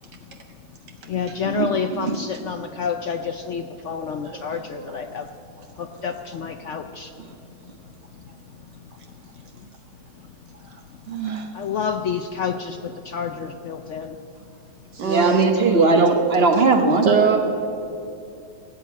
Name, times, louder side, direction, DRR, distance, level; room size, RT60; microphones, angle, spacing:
voice 1, 1.1-5.3 5.8-7.1 11.5-14.2, left 6 dB, 80° left, 7 dB, 0.6 m, -29 dB
voice 2, 11.1-11.5 15.0-17.1, right 3 dB, 40° right, 5 dB, 1.0 m, -19 dB
voice 3, 14.9-15.5 17.0-17.4, right 6 dB, 70° right, 3 dB, 1.6 m, -21 dB
17.0 x 8.3 x 9.3 m, 2.6 s
omnidirectional pair, 1.9 m